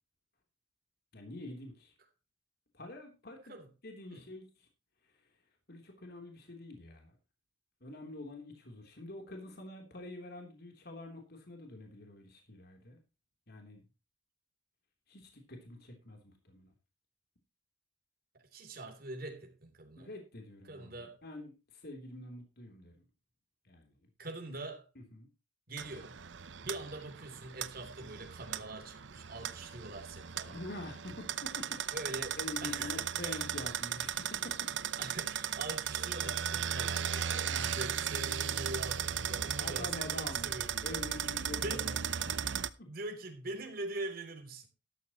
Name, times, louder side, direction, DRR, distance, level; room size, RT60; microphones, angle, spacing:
voice 1, 1.1-1.9 2.7-3.5 3.8-4.7 5.7-7.2 7.8-13.0 13.5-13.8 15.1-16.7 19.9-23.0 23.6-24.0 24.5-24.6 24.9-25.3 30.5-32.1 32.4-34.7 37.4-37.8 39.6-40.5 40.8-42.9, left 2 dB, 55° left, 3.3 m, -46 dB
voice 2, 18.5-20.1 20.6-21.2 24.2-24.8 25.7-26.2 26.6-30.6 31.9-33.5 35.0-42.0 42.8-44.7, right 2 dB, 50° right, 3.3 m, -43 dB
sound 1, 25.8-42.7, right 8 dB, 75° right, 0.7 m, -36 dB
13.5 x 12.0 x 3.0 m
head